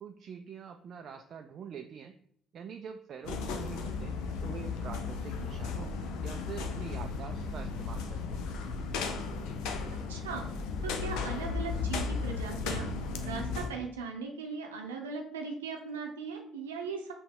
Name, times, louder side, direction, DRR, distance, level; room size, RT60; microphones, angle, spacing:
voice 1, 0.0-2.1 2.5-8.5, right 7 dB, 50° right, 6 dB, 0.3 m, -45 dB
sound 1, 3.2-13.7, left 4 dB, 70° left, 0.5 m, -35 dB
voice 2, 9.9-10.5 10.8-12.9 13.2-17.1, right 4 dB, 85° right, 2 dB, 0.7 m, -38 dB
5.6 x 2.2 x 3.5 m, 0.65 s
hypercardioid pair, 50°, 0 cm